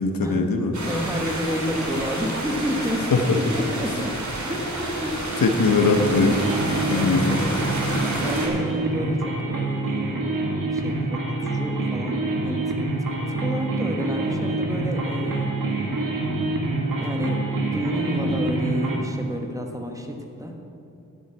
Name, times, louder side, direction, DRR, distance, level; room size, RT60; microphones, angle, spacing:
voice 1, 0.0-0.8 3.1-3.4 5.4-6.5 6.9-7.4, left 4 dB, 85° left, 4 dB, 1.0 m, -21 dB
sound 1, 0.7-8.5, right 1 dB, 60° right, 2.6 m, -29 dB
voice 2, 0.9-3.1 3.4-4.2 4.5-5.3 6.9-7.6 7.8-10.3 10.7-12.8 13.4-15.5 17.0-20.5, equal, 10° right, 2 dB, 1.3 m, -30 dB
sound 2, 5.8-19.0, right 2 dB, 75° right, 1.8 m, -26 dB
11.0 x 6.4 x 8.4 m, 2.6 s
wide cardioid pair, 105°, 33 cm